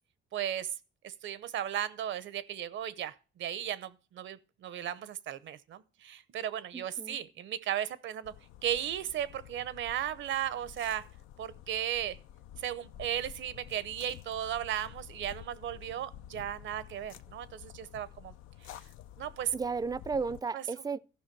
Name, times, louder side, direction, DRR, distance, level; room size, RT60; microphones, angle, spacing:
voice 1, 0.3-0.7 1.0-8.3 8.6-11.1 11.4-12.2 12.6-18.3 18.6-18.8 19.2-19.5 20.5-20.6, right 11 dB, 70° right, 0.8 m, -35 dB
voice 2, 6.7-7.2 19.5-21.0, right 4 dB, 20° right, 0.4 m, -34 dB
sound 1, 8.2-20.4, left 11 dB, 85° left, 0.5 m, -51 dB
14.5 x 5.7 x 4.6 m
cardioid pair, 90°, 20 cm